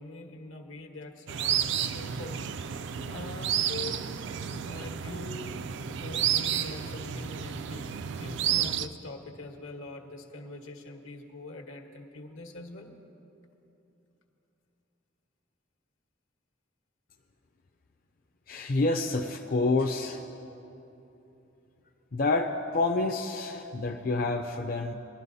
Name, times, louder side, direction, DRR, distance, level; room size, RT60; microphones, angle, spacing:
voice 1, 0.0-2.5 3.1-4.1 4.4-7.9 8.2-12.9, left 2 dB, 80° left, 2 dB, 1.3 m, -43 dB
sound 1, 1.3-8.9, right 8 dB, 60° right, 0.4 m, -31 dB
voice 2, 18.5-20.2 22.1-24.9, left 3 dB, 45° left, 2 dB, 0.5 m, -28 dB
22.5 x 11.5 x 2.7 m, 3.0 s
head